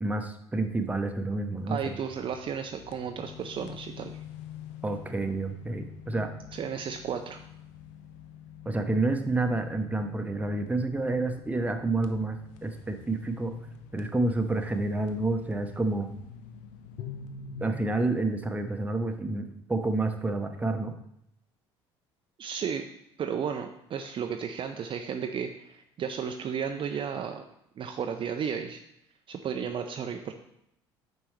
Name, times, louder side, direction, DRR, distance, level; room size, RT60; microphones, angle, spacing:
voice 1, 0.0-1.8 4.8-6.3 8.6-13.5 13.9-16.1 17.6-20.9, right 2 dB, 10° right, 5 dB, 0.9 m, -29 dB
sound 1, 1.6-17.8, left 7 dB, 60° left, 0.7 m, -46 dB
voice 2, 1.7-4.2 6.5-7.4 22.4-22.8 23.2-27.4 27.8-28.8 29.3-30.3, right 7 dB, 35° right, 5 dB, 0.5 m, -33 dB
8.9 x 5.4 x 3.2 m, 0.78 s
figure-of-eight pair, 60°, 14 cm